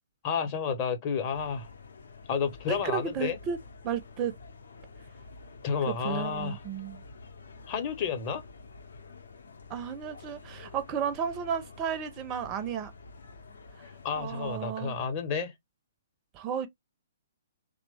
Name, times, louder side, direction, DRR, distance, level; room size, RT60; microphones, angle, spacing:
voice 1, 0.2-1.7 2.3-3.4 5.6-6.6 7.7-8.4 14.0-15.5, left 6 dB, 35° left, 0.7 m, -31 dB
sound 1, 1.3-14.6, left 4 dB, 65° left, 0.6 m, -49 dB
voice 2, 2.7-3.6 3.8-4.4 6.0-7.0 9.7-12.9 14.2-15.0 16.3-16.7, right 8 dB, 25° right, 0.5 m, -33 dB
2.9 x 2.1 x 3.3 m
figure-of-eight pair, 120°, 0 cm